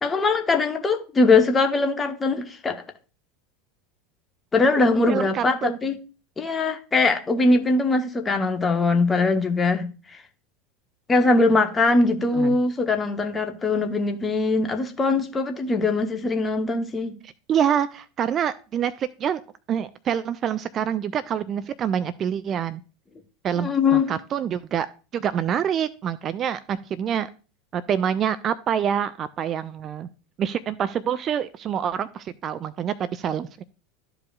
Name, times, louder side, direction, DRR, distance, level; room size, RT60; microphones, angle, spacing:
voice 1, 0.0-2.8 4.5-6.0 6.4-9.9 11.1-17.2 23.6-24.1, left 3 dB, 20° left, 1.0 m, -21 dB
voice 2, 4.8-5.8 12.3-12.6 17.5-19.4 19.7-22.8 23.4-24.9 25.1-27.3 27.7-30.1 30.4-33.6, right 8 dB, 35° right, 0.4 m, -26 dB
12.5 x 5.0 x 2.3 m
figure-of-eight pair, 80°, 0 cm